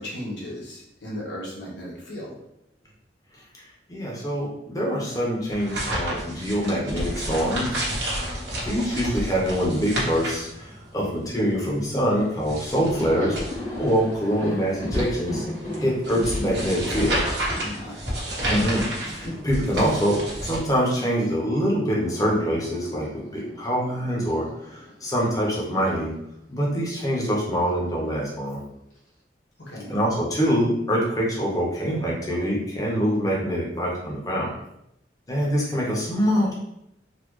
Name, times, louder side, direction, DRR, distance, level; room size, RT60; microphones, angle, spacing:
voice 1, 0.0-2.4 17.6-18.2 29.6-29.9, left 1 dB, 90° left, -4 dB, 1.2 m, -36 dB
voice 2, 3.9-7.8 8.1-13.4 13.8-15.4 15.8-17.1 18.5-26.1 26.5-28.6 29.9-34.6 35.3-36.5, equal, 20° left, -4 dB, 0.9 m, -25 dB
sound 1, 5.5-20.6, right 1 dB, 85° right, 1.2 m, -31 dB
Thunder, 12.2-12.3 12.5-21.4 21.6-25.9 26.2-26.4 27.5-28.2, left 1 dB, 45° left, 1.1 m, -37 dB
4.1 x 2.2 x 3.1 m, 0.81 s
head